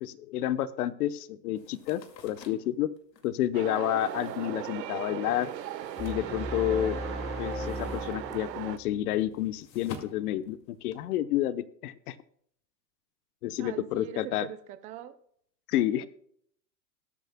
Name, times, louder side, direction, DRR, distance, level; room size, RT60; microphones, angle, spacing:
voice 1, 0.0-2.9 3.2-5.5 6.0-7.0 7.4-12.2 13.4-14.5 15.7-16.0, left 13 dB, 65° left, 14 dB, 0.9 m, -30 dB
sound 1, 1.5-7.0 7.3-11.2, left 5 dB, 90° left, 2.3 m, -50 dB
sound 2, 3.5-8.8, right 11 dB, 85° right, 1.3 m, -37 dB
sound 3, 6.0-9.3, left 1 dB, 15° left, 1.2 m, -37 dB
voice 2, 13.6-15.1 15.8-16.1, right 12 dB, 15° right, 11 dB, 0.4 m, -43 dB
19.5 x 9.2 x 2.2 m, 0.65 s
hypercardioid pair, 135°, 49 cm